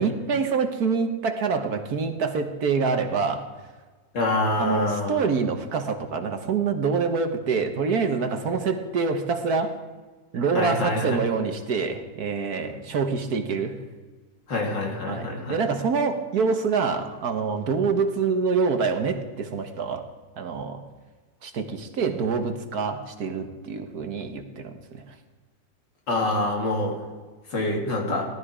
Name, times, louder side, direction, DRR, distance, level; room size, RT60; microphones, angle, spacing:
voice 1, 0.0-3.5 4.6-9.7 10.3-13.8 15.0-20.0 20.4-20.8 21.4-25.2, right 5 dB, 60° right, 7 dB, 1.6 m, -26 dB
voice 2, 4.1-5.2 10.6-11.2 14.5-15.6 26.1-26.9 27.5-28.2, left 2 dB, 75° left, 0 dB, 3.5 m, -25 dB
18.0 x 12.5 x 4.9 m, 1.3 s
omnidirectional pair, 2.0 m